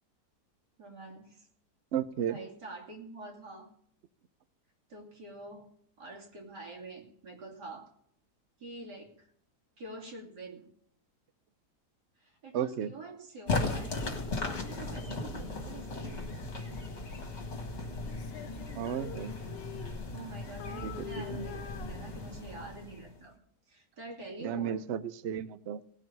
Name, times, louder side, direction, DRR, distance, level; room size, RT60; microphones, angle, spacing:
voice 1, 0.8-1.5 2.3-3.7 4.9-5.7 6.0-7.9 8.6-9.3 9.8-10.7 12.2-16.3 19.8-23.3 23.7-24.8, right 2 dB, 90° right, -1 dB, 3.3 m, -46 dB
voice 2, 1.9-2.4 12.5-12.9 18.7-19.3 20.8-21.5 21.8-21.9 24.4-25.8, right 9 dB, 60° right, 14 dB, 0.7 m, -34 dB
sound 1, 13.5-23.3, left 3 dB, 45° left, 2.0 m, -37 dB
Female singing, 18.0-20.3 20.6-22.7, left 11 dB, 65° left, 0.6 m, -46 dB
18.0 x 6.2 x 5.4 m, 0.65 s
omnidirectional pair, 1.7 m